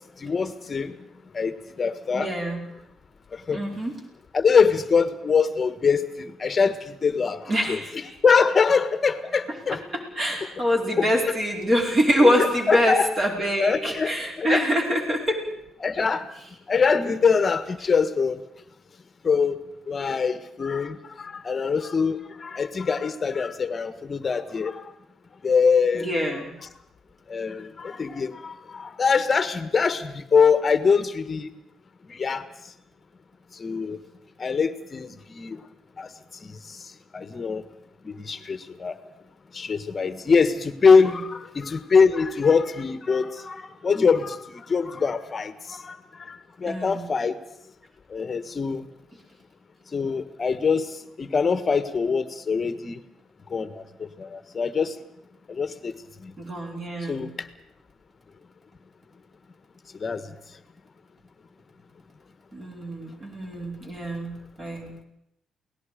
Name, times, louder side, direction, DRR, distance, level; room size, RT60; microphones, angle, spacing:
voice 1, 0.2-1.0 1.3-2.3 3.3-3.6 4.3-9.8 11.0-11.3 12.2-13.1 13.6-14.7 15.1-15.2 15.8-16.3 16.7-18.4 19.2-19.6 19.9-24.9 25.4-26.1 27.3-31.5 32.1-32.4 33.6-34.0 34.4-35.6 36.0-36.1 36.4-36.8 37.1-37.6 38.0-39.0 39.5-47.4 48.1-48.9 49.9-53.0 53.5-55.0 55.5-55.9 56.2-56.3 57.1-57.3 60.0-60.3, left 5 dB, 30° left, 10 dB, 1.4 m, -23 dB
voice 2, 2.1-2.6 3.5-4.0 7.5-8.0 9.9-15.4 16.9-17.1 25.9-26.6 40.9-41.0 46.7-47.1 56.4-57.3 62.5-65.0, equal, 30° right, 0 dB, 5.1 m, -25 dB
28.5 x 18.5 x 5.1 m, 0.79 s
cardioid pair, 145°, 0 cm